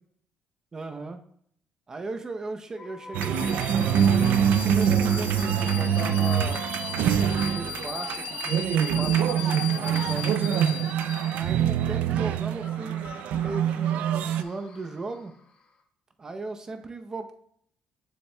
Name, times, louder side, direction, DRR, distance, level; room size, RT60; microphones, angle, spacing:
voice 1, 0.7-1.2 1.9-6.6 7.0-10.8 11.3-15.3 16.2-17.3, right 3 dB, 25° right, 6 dB, 0.7 m, -37 dB
sound 1, 2.8-15.8, left 4 dB, 50° left, 1.5 m, -50 dB
sound 2, 3.1-14.4, right 9 dB, 80° right, 0.4 m, -24 dB
sound 3, 3.2-11.7, left 13 dB, 75° left, 0.5 m, -38 dB
7.1 x 7.0 x 2.2 m, 0.65 s
cardioid pair, 120°, 3 cm